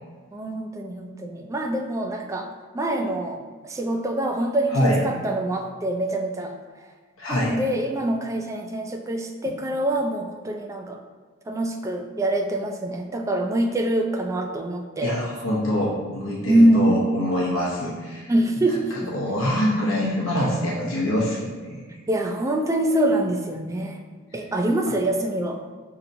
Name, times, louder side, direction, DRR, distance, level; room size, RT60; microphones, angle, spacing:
voice 1, 0.3-6.5 7.3-11.0 11.5-15.1 16.5-17.0 18.3-19.1 22.1-24.0 24.3-25.6, right 1 dB, 15° right, 3 dB, 0.3 m, -24 dB
voice 2, 4.7-5.0 7.2-7.6 15.0-18.3 19.1-21.8, left 1 dB, 75° left, -5 dB, 0.8 m, -24 dB
5.4 x 2.8 x 2.6 m, 1.4 s
head